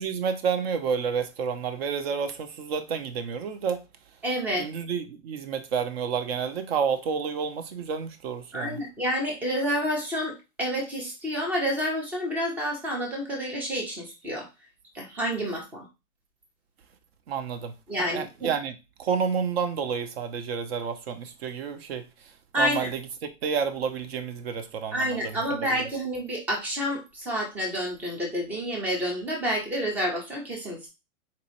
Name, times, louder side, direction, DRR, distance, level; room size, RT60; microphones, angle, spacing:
voice 1, 0.0-3.8 4.6-8.8 17.3-17.7 18.0-18.7 19.0-22.1 22.6-25.4 25.7-25.9, right 6 dB, 50° right, 0.8 m, -30 dB
voice 2, 4.2-4.6 8.5-14.5 14.9-15.8 17.9-18.5 22.5-22.9 24.9-30.9, equal, 5° right, 0.4 m, -29 dB
4.2 x 2.8 x 2.6 m
hypercardioid pair, 130°, 40 cm